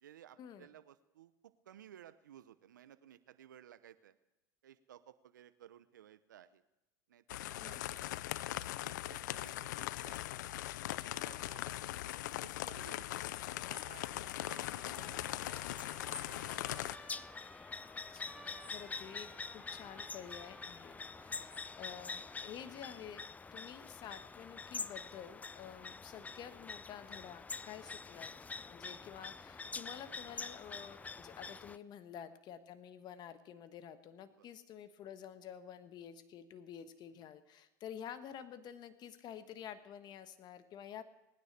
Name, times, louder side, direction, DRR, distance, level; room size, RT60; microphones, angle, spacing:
voice 1, 0.0-4.2 4.6-6.6 7.1-8.1 8.8-10.5 11.1-12.2 12.4-13.1 13.5-15.6 18.6-18.9 34.4-34.5 37.1-37.3, right 10 dB, 85° right, 13 dB, 0.8 m, -58 dB
sound 1, 7.3-17.0, left 15 dB, 75° left, 0.5 m, -40 dB
voice 2, 7.6-7.9 18.1-23.2 23.5-41.0, left 9 dB, 45° left, 11 dB, 1.4 m, -50 dB
Trumpet, 13.4-22.6, right 1 dB, 5° right, 2.9 m, -58 dB
sound 2, 14.9-31.8, left 4 dB, 15° left, 0.5 m, -46 dB
19.0 x 9.8 x 6.7 m, 0.94 s
hypercardioid pair, 90°, 10 cm